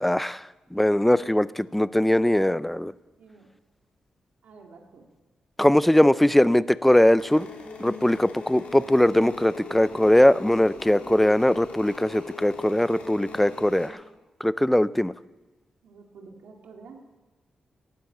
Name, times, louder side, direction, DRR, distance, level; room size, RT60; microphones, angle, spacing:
voice 1, 0.0-0.4 0.7-2.9 5.6-7.5 7.8-14.0 14.4-15.1, left 1 dB, 5° left, 17 dB, 0.4 m, -20 dB
voice 2, 3.2-3.5 4.4-5.1 15.8-17.0, right 4 dB, 90° right, 1 dB, 2.3 m, -49 dB
sound 1, 7.2-13.9, left 4 dB, 65° left, 3.2 m, -41 dB
18.0 x 10.5 x 7.2 m, 1.2 s
wide cardioid pair, 125°, 2 cm